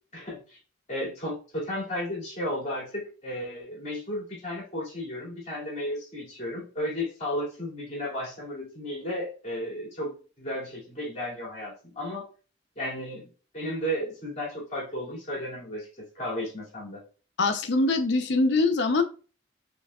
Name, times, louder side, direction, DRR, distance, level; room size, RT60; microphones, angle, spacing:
voice 1, 0.1-0.6 0.9-12.3 12.8-13.2 13.5-15.9 16.1-17.0, left 1 dB, 40° left, -4 dB, 2.4 m, -34 dB
voice 2, 17.4-19.0, left 3 dB, 65° left, 6 dB, 0.6 m, -23 dB
5.5 x 3.6 x 2.3 m, 0.36 s
head